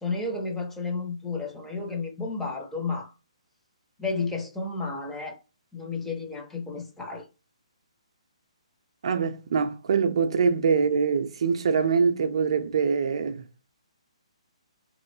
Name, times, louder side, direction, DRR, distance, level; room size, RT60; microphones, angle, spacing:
voice 1, 0.0-3.1 4.0-5.4 5.7-7.3, left 3 dB, 5° left, 0.6 m, -32 dB
voice 2, 9.0-13.4, right 5 dB, 55° right, 0.4 m, -24 dB
3.0 x 2.9 x 2.7 m
figure-of-eight pair, 140°, 4 cm